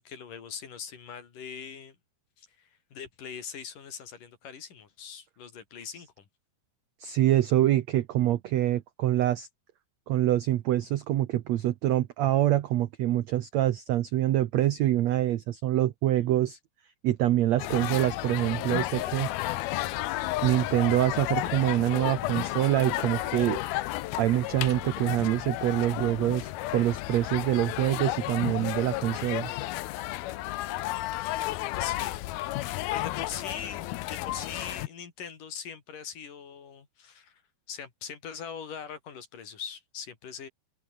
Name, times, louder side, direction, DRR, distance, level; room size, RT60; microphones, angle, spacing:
voice 1, 0.0-2.0 2.4-6.3 31.8-32.4 32.9-37.4 37.7-40.5, left 7 dB, 60° left, 4.6 m, -42 dB
voice 2, 7.0-9.5 10.1-16.6 17.0-19.3 20.4-23.6 24.2-29.5, right 13 dB, 75° right, 1.6 m, -25 dB
sound 1, 17.6-34.9, left 17 dB, 90° left, 2.8 m, -32 dB
open air
omnidirectional pair, 4.3 m